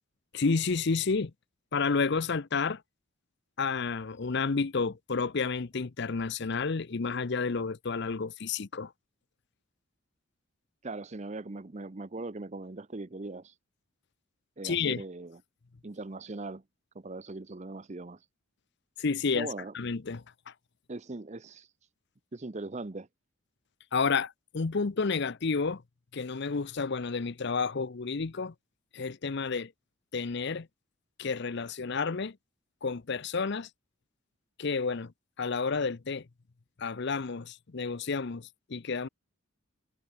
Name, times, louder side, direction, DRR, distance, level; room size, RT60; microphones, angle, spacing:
voice 1, 0.3-1.3 1.7-2.8 3.6-8.9 14.6-15.0 19.0-19.5 19.7-20.5 23.9-25.8 26.1-28.5 28.9-29.7 30.1-30.7 31.2-32.4 32.8-33.7 34.6-35.1 35.4-36.3 36.8-39.1, left 4 dB, 50° left, 0.6 m, -30 dB
voice 2, 10.8-13.5 14.6-15.4 15.8-16.6 16.9-18.2 19.3-19.7 20.9-21.7 22.3-23.1, right 2 dB, 30° right, 0.7 m, -40 dB
head